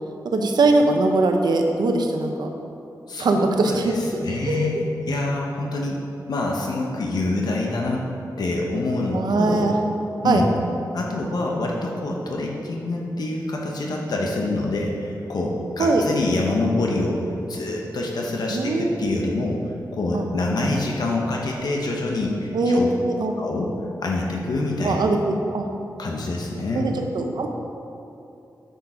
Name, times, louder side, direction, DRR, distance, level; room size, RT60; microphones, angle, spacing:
voice 1, 0.2-2.5 3.2-3.9 4.4-4.7 9.1-9.8 10.2-10.5 15.8-16.1 18.5-19.1 20.1-20.2 22.5-23.3 24.8-25.7 26.7-27.5, right 2 dB, 85° right, 3 dB, 0.9 m, -21 dB
voice 2, 3.1-6.0 6.3-8.1 8.4-9.7 10.2-10.5 10.9-17.2 17.5-19.6 19.9-22.9 23.4-23.7 24.0-25.0 26.0-26.9, left 2 dB, 75° left, -1 dB, 1.0 m, -26 dB
8.1 x 6.7 x 5.0 m, 2.7 s
wide cardioid pair, 80°, 7 cm